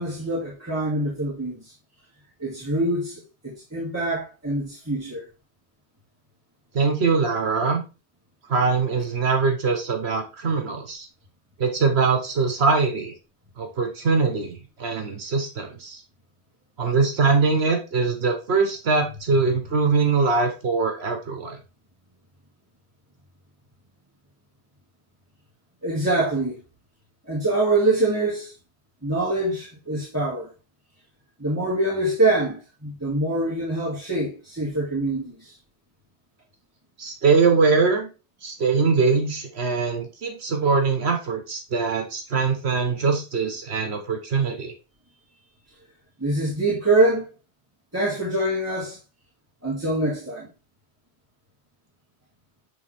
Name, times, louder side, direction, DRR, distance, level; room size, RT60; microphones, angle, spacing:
voice 1, 0.0-1.7 2.4-5.2 25.8-26.6 27.2-28.5 29.0-30.5 31.4-35.5 46.2-47.3 47.9-49.0 49.6-50.5, right 2 dB, 15° right, 2.3 m, -24 dB
voice 2, 6.7-7.8 8.5-11.1 11.6-13.1 13.6-16.0 16.8-21.6 37.0-38.1 38.4-44.7, right 4 dB, 70° right, 1.4 m, -22 dB
8.3 x 3.7 x 3.4 m
omnidirectional pair, 1.1 m